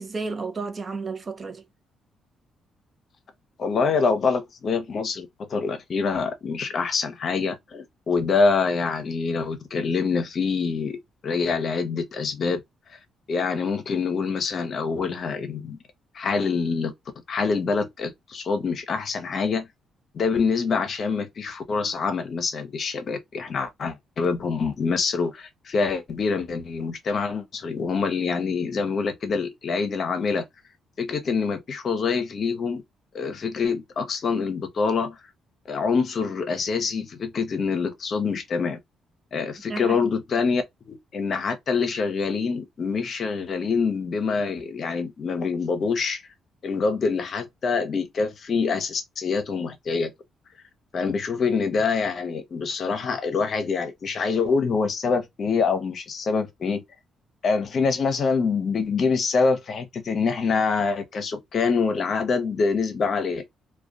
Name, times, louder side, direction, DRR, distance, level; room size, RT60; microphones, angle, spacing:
voice 1, 0.0-1.6 39.7-40.1, right 4 dB, 35° right, 0.5 m, -32 dB
voice 2, 3.6-11.0 11.2-12.6 13.3-15.8 16.1-16.9 17.3-19.7 20.1-30.4 31.0-32.8 33.1-35.2 35.7-38.8 39.3-46.2 46.6-50.1 50.9-56.8 57.4-63.4, left 5 dB, 50° left, 0.7 m, -25 dB
2.3 x 2.2 x 2.5 m
cardioid pair, 90°, 0 cm